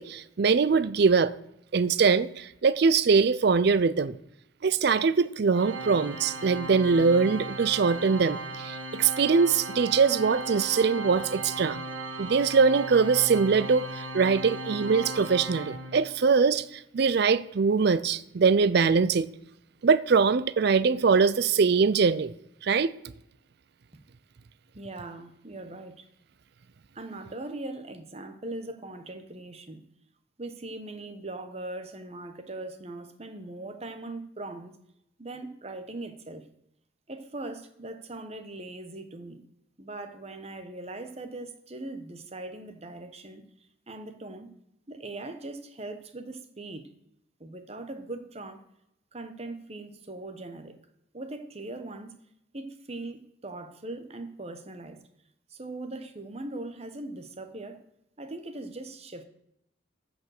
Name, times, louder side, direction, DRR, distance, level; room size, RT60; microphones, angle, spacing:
voice 1, 0.0-1.3 1.7-4.2 4.6-11.8 12.2-19.3 19.8-22.4 22.6-22.9, right 5 dB, 55° right, 0.4 m, -23 dB
Organ, 5.5-16.3, right 2 dB, 70° right, 1.9 m, -37 dB
voice 2, 24.7-26.0 26.9-29.8 30.4-34.8 35.2-36.4 37.1-39.4 39.8-43.4 43.9-44.5 44.9-46.9 47.4-48.6 49.1-50.8 51.1-52.1 52.5-55.0 55.5-57.8 58.2-59.2, right 2 dB, 30° right, 1.0 m, -40 dB
14.0 x 5.2 x 6.5 m
head